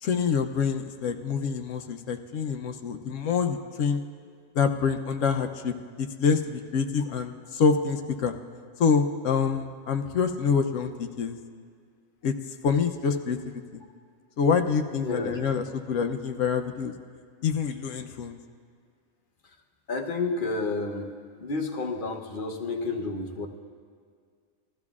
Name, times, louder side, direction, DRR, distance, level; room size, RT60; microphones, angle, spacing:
voice 1, 0.0-4.0 4.5-8.3 8.8-11.4 12.2-12.3 12.6-13.8 14.4-16.9 17.4-18.4, left 6 dB, 75° left, 5 dB, 1.0 m, -26 dB
voice 2, 14.9-15.4 19.9-21.1 21.4-23.5, left 3 dB, 45° left, 3 dB, 1.0 m, -30 dB
20.5 x 14.0 x 2.4 m, 2.1 s
omnidirectional pair, 1.4 m